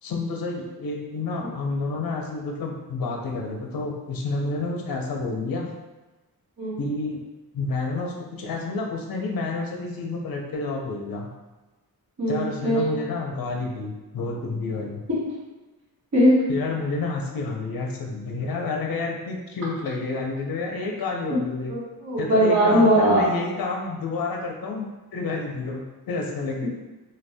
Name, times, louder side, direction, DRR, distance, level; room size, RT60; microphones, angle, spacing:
voice 1, 0.0-5.7 6.8-7.2 7.5-11.3 12.3-15.0 16.5-21.7 22.2-26.7, left 3 dB, 65° left, 0 dB, 0.5 m, -29 dB
voice 2, 12.2-12.8 16.1-16.4 21.3-21.4 21.7-23.3, equal, 45° right, -7 dB, 1.1 m, -20 dB
2.5 x 2.2 x 3.3 m, 1.1 s
wide cardioid pair, 150°, 39 cm